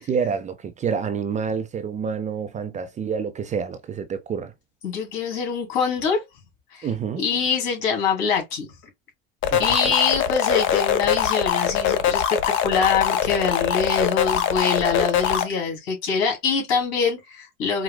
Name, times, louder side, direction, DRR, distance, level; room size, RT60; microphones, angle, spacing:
voice 1, 0.0-4.5 6.8-7.2 9.5-9.9, right 6 dB, 25° right, 0.4 m, -28 dB
voice 2, 4.8-6.2 6.7-6.9 7.2-8.7 9.6-17.8, left 5 dB, 65° left, 2.3 m, -24 dB
sound 1, 9.4-15.4, left 8 dB, 40° left, 0.7 m, -22 dB
4.6 x 2.0 x 2.2 m
hypercardioid pair, 95°, 30 cm